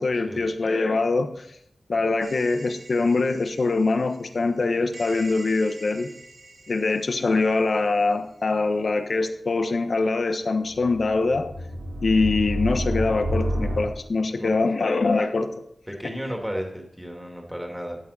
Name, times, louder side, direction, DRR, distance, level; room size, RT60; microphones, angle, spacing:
voice 1, 0.0-1.4 1.9-6.1 6.7-11.5 12.0-15.5, left 3 dB, 65° left, 8 dB, 1.1 m, -23 dB
sound 1, 2.2-3.3 4.9-6.7 10.7-13.8, equal, 85° right, 2.6 m, -31 dB
voice 2, 14.2-14.6 15.9-18.0, equal, 5° right, 1 dB, 2.2 m, -33 dB
13.5 x 9.9 x 4.1 m, 0.72 s
wide cardioid pair, 105°, 0 cm